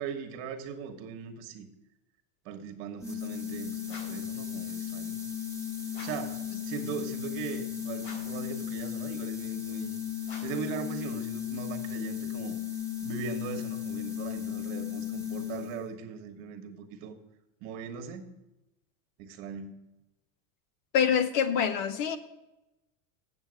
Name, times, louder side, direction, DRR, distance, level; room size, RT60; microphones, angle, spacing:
voice 1, 0.0-1.7 2.4-5.2 6.0-10.0 10.4-12.6 13.0-17.2 17.6-18.3 19.2-19.7, right 6 dB, 55° right, 7 dB, 1.4 m, -39 dB
sound 1, 3.0-15.9, left 10 dB, 10° left, 1.0 m, -36 dB
sound 2, 3.9-4.3 5.9-6.4 8.0-8.5 10.2-10.7, left 2 dB, 70° left, 3.9 m, -48 dB
voice 2, 20.9-22.2, left 7 dB, 50° left, 12 dB, 0.9 m, -25 dB
7.9 x 7.3 x 6.4 m, 0.97 s
supercardioid pair, 155°, 39 cm